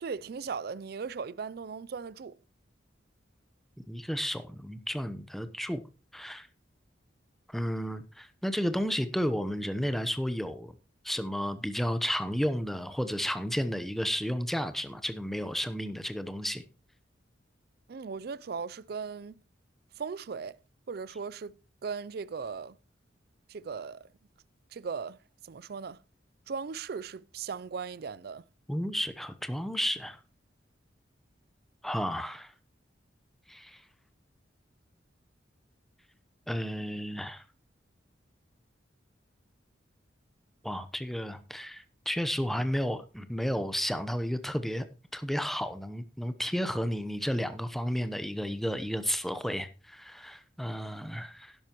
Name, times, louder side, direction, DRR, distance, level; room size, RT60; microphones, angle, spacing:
voice 1, 0.0-2.4 17.9-19.3 20.0-20.6 20.9-22.8 23.5-24.1 24.7-25.2 25.4-26.0 26.5-28.4, right 5 dB, 55° right, 0.4 m, -38 dB
voice 2, 3.9-5.8 6.1-6.5 7.5-10.7 11.0-16.6 28.7-30.2 31.8-32.5 33.5-33.8 36.5-37.4 40.6-44.8 45.1-51.6, equal, ahead, 0.8 m, -32 dB
12.0 x 11.0 x 3.0 m
head